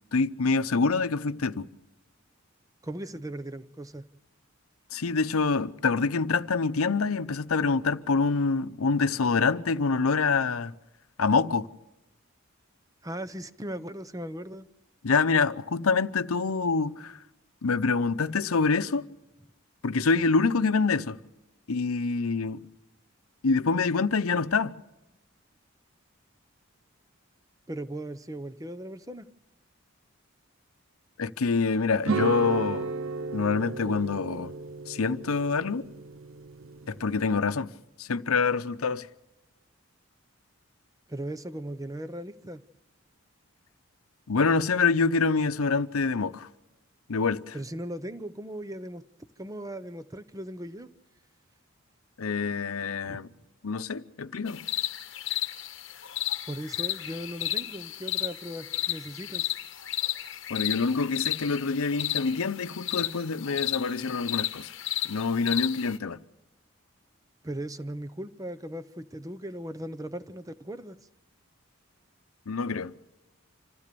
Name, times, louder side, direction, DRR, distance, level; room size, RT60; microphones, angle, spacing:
voice 1, 0.1-1.7 4.9-10.7 11.2-11.7 15.0-17.2 17.6-19.1 19.8-21.2 21.7-22.6 23.4-24.7 31.2-32.9 33.3-34.5 34.9-35.9 36.9-37.7 38.0-39.1 44.3-46.5 47.1-47.6 52.2-53.3 53.6-54.6 60.5-64.7 65.0-66.2 72.5-72.9, left 4 dB, 90° left, 0.7 m, -26 dB
voice 2, 2.8-4.1 13.0-14.7 27.7-29.3 41.1-42.6 47.5-49.0 49.4-50.9 53.1-53.2 56.5-59.5 67.4-71.0, right 1 dB, 15° right, 0.7 m, -38 dB
sound 1, 32.0-37.2, right 4 dB, 75° right, 0.7 m, -34 dB
sound 2, 54.5-66.0, left 13 dB, 60° left, 1.0 m, -33 dB
26.5 x 15.0 x 6.8 m
head